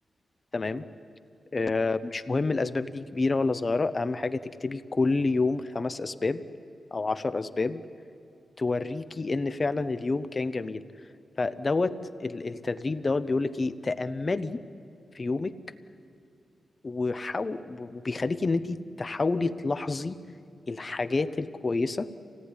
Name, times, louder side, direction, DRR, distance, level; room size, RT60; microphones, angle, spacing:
voice 1, 0.5-0.8 1.5-6.4 6.9-7.8 8.6-10.8 11.4-11.9 12.2-14.6 15.1-15.5 16.8-20.2 20.7-22.1, left 3 dB, 35° left, 11 dB, 0.8 m, -28 dB
25.5 x 18.0 x 9.8 m, 2.5 s
wide cardioid pair, 100°, 0 cm